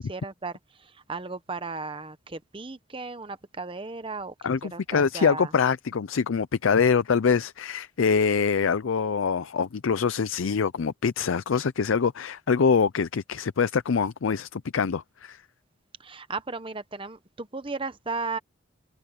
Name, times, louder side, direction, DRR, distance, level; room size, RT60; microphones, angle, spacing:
voice 1, 0.0-4.3 4.7-5.5 16.0-18.4, right 3 dB, 25° right, 0.9 m, -35 dB
voice 2, 4.4-15.4, left 6 dB, 75° left, 0.5 m, -24 dB
head